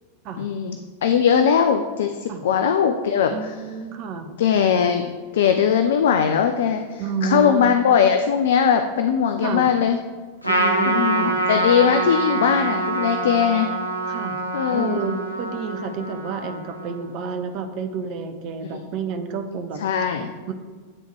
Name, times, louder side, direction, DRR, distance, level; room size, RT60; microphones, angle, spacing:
voice 1, 0.4-3.6 4.4-5.0 5.3-10.0 10.9-13.7 14.5-15.0 19.8-20.3, left 7 dB, 60° left, 7 dB, 0.3 m, -20 dB
voice 2, 3.3-4.3 7.0-7.7 9.4-9.7 10.4-11.4 14.1-14.4 14.7-19.8 20.1-20.5, right 5 dB, 40° right, 6 dB, 0.6 m, -30 dB
Trumpet, 10.4-17.1, right 2 dB, 90° left, 0.7 m, -25 dB
8.6 x 3.5 x 3.1 m, 1.5 s
figure-of-eight pair, 90°, 0 cm